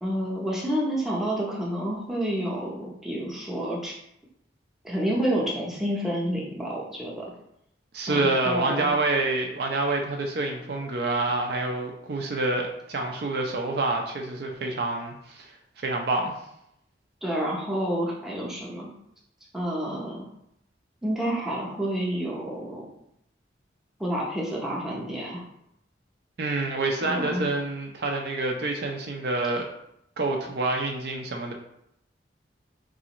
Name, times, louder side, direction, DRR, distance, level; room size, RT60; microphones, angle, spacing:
voice 1, 0.0-3.9 4.8-7.3 8.1-8.9 17.2-18.9 19.5-20.3 21.0-22.9 24.0-25.4 27.0-27.4, right 1 dB, ahead, -5 dB, 0.6 m, -29 dB
voice 2, 7.9-15.5 15.8-16.3 26.4-29.7 30.2-31.5, right 2 dB, 60° right, 2 dB, 0.5 m, -27 dB
4.0 x 2.5 x 2.9 m, 0.78 s
head